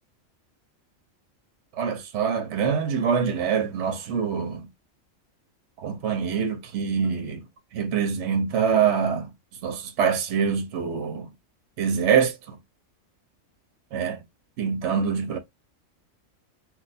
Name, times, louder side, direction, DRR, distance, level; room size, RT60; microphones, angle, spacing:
voice 1, 1.8-4.7 5.8-7.4 7.7-9.3 9.6-11.3 11.8-12.4 13.9-14.2 14.6-15.4, right 7 dB, 65° right, 0.9 m, -25 dB
2.3 x 2.2 x 3.9 m
omnidirectional pair, 1.4 m